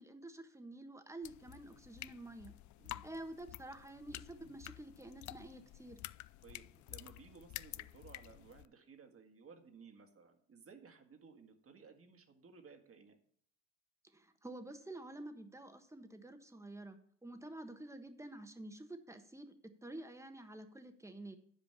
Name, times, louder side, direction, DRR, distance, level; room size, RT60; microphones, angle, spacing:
voice 1, 0.0-2.5 3.0-6.0 14.1-21.4, right 1 dB, 5° right, 7 dB, 1.4 m, -49 dB
sound 1, 1.2-8.7, left 16 dB, 50° left, 0.4 m, -50 dB
voice 2, 6.4-13.2, right 5 dB, 35° right, 6 dB, 1.9 m, -58 dB
10.5 x 5.1 x 6.9 m, 0.62 s
hypercardioid pair, 75°, 39 cm